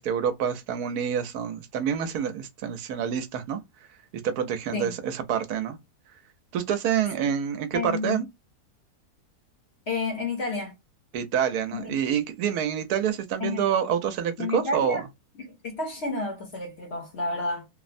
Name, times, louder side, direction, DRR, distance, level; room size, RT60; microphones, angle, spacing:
voice 1, 0.0-3.6 4.2-5.8 6.5-8.3 11.1-15.0, right 8 dB, 75° right, 1.1 m, -27 dB
voice 2, 7.7-8.3 9.9-10.7 11.7-12.0 13.4-13.7 14.4-15.1 15.4-17.7, left 3 dB, 55° left, 0.8 m, -31 dB
3.0 x 2.0 x 2.4 m
omnidirectional pair, 1.7 m